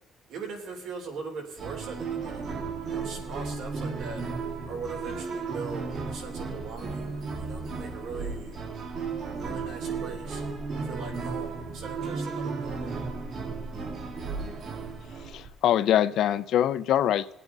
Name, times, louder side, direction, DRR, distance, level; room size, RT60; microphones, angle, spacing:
voice 1, 0.3-2.5 2.8-4.2 4.7-8.6 9.3-10.4 10.8-13.0, right 4 dB, 80° right, 1 dB, 3.6 m, -40 dB
sound 1, 1.6-15.5, right 4 dB, 45° right, 1.6 m, -34 dB
voice 2, 15.2-17.3, left 11 dB, 60° left, 13 dB, 0.6 m, -24 dB
20.5 x 8.5 x 4.0 m, 0.89 s
cardioid pair, 170°, 0 cm